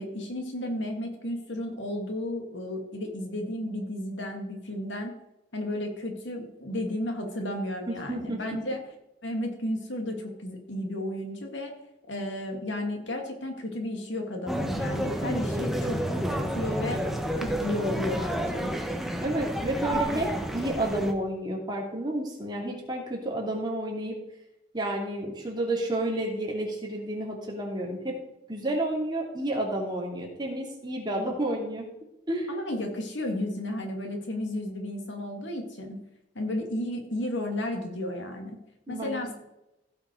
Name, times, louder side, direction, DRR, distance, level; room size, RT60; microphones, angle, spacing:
voice 1, 0.0-5.1 5.5-8.8 9.2-11.7 12.1-17.0 17.4-18.8 31.2-31.3 32.5-36.0 36.3-38.6 38.9-39.3, left 1 dB, 85° left, 3 dB, 2.4 m, -33 dB
voice 2, 7.9-8.4 19.2-24.2 24.7-28.1 28.5-31.8 32.3-32.5 38.9-39.3, right 1 dB, 25° right, -2 dB, 2.7 m, -30 dB
sound 1, 14.5-21.1, equal, ahead, 1.0 m, -30 dB
15.5 x 5.9 x 4.6 m, 0.89 s
head